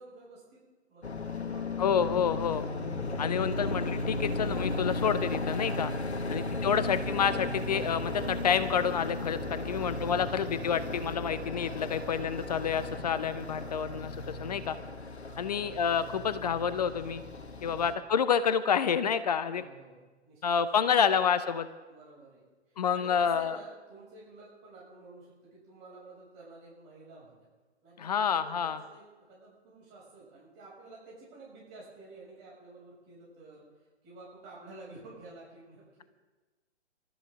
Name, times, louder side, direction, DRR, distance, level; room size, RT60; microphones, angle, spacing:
voice 1, 0.0-1.9 5.9-6.9 9.5-10.2 13.5-14.0 15.2-15.6 17.6-18.1 19.5-21.0 21.9-27.3 27.8-33.6 34.0-36.0, right 2 dB, 25° right, -5 dB, 6.8 m, -51 dB
sound 1, 1.0-17.9, left 2 dB, 70° left, 1.4 m, -35 dB
voice 2, 1.8-2.6 3.2-5.9 6.3-14.8 15.4-17.2 17.6-19.6 20.4-21.7 22.8-23.6 28.0-28.8, left 7 dB, 35° left, 14 dB, 0.7 m, -28 dB
sound 2, 2.7-11.1, left 4 dB, 55° left, 4.3 m, -49 dB
25.0 x 13.5 x 3.8 m, 1.2 s
figure-of-eight pair, 125°, 34 cm